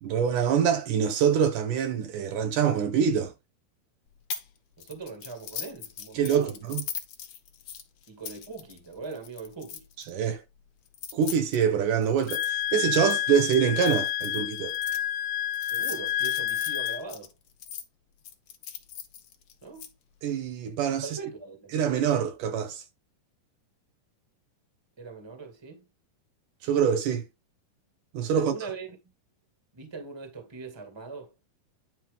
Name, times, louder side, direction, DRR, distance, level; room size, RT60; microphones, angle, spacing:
voice 1, 0.0-3.3 6.2-6.8 10.1-10.4 11.1-14.8 20.2-21.1 21.7-22.8 26.6-27.2 28.1-28.5, right 7 dB, 75° right, 2.3 m, -25 dB
sound 1, 4.3-4.5 4.8-10.1 10.9-15.0 15.5-17.8 18.2-19.9, left 8 dB, 60° left, 2.1 m, -40 dB
voice 2, 4.8-6.6 8.1-9.8 15.7-17.3 19.6-19.9 21.0-21.7 25.0-25.9 28.3-28.9 29.7-31.3, right 4 dB, 10° right, 1.5 m, -41 dB
Wind instrument woodwind instrument, 12.3-17.0, left 12 dB, 80° left, 1.7 m, -29 dB
10.5 x 4.9 x 3.5 m
omnidirectional pair, 4.0 m